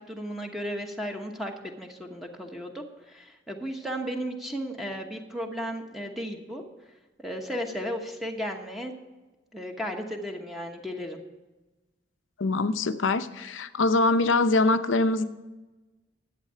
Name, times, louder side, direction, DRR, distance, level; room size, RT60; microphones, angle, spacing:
voice 1, 0.0-6.6 7.2-8.9 9.5-11.2, equal, ahead, 2 dB, 1.0 m, -35 dB
voice 2, 12.4-15.3, left 3 dB, 80° left, 11 dB, 0.7 m, -23 dB
11.5 x 8.4 x 5.7 m, 1.1 s
head